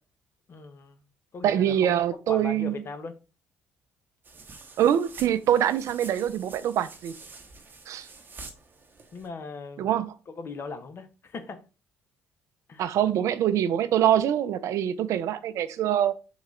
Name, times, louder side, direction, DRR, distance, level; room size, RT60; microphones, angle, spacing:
voice 1, 0.5-1.0 1.3-3.2 9.1-9.9 10.3-11.6 12.7-12.9, left 4 dB, 45° left, 0.7 m, -39 dB
voice 2, 1.4-2.7 4.8-7.1 7.9-8.1 9.8-10.1 12.8-16.1, right 10 dB, 65° right, 0.4 m, -24 dB
sound 1, 4.2-9.3, right 3 dB, 35° right, 0.8 m, -47 dB
3.8 x 2.3 x 3.1 m
hypercardioid pair, 60°, 6 cm